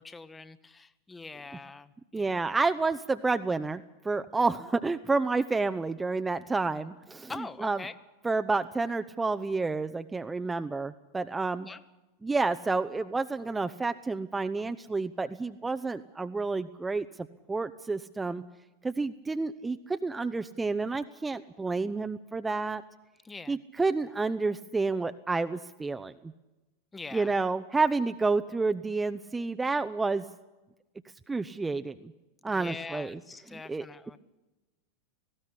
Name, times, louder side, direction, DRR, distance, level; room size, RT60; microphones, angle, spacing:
voice 1, 0.0-2.4 7.3-7.9 11.6-11.8 23.2-23.6 26.9-27.3 32.5-34.2, left 4 dB, 10° left, 14 dB, 1.0 m, -43 dB
voice 2, 2.1-7.8 8.2-11.7 12.2-17.1 17.5-18.4 18.8-22.8 23.5-26.3 27.1-30.2 31.3-32.1 32.4-33.2 33.5-33.9, right 3 dB, 10° right, 9 dB, 0.7 m, -30 dB
19.0 x 16.5 x 9.9 m, 1.1 s
figure-of-eight pair, 90°, 0 cm